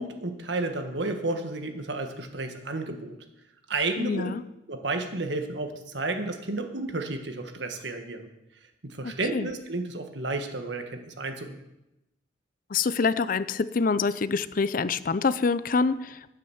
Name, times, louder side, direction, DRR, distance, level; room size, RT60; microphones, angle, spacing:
voice 1, 0.0-3.2 3.7-4.3 4.7-8.3 8.8-11.5, right 2 dB, 70° right, 5 dB, 1.6 m, -32 dB
voice 2, 4.0-4.4 9.3-9.5 12.7-16.3, left 4 dB, 45° left, 16 dB, 0.5 m, -26 dB
11.0 x 9.3 x 7.2 m, 0.92 s
head